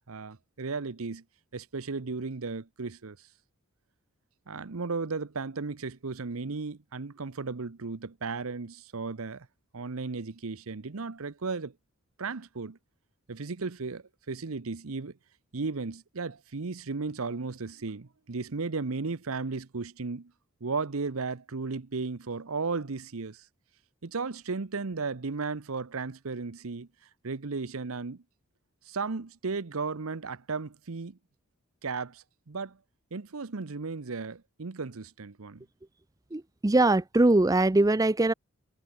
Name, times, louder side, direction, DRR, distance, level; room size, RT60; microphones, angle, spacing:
voice 1, 0.1-1.2 1.5-3.2 4.5-9.5 9.7-11.7 12.2-12.8 13.3-15.1 15.5-20.3 20.6-23.4 24.0-26.9 27.2-28.2 28.9-31.2 31.8-32.8 33.1-35.6, right 4 dB, 80° right, 0.9 m, -35 dB
voice 2, 36.3-38.3, right 2 dB, 15° right, 0.5 m, -22 dB
head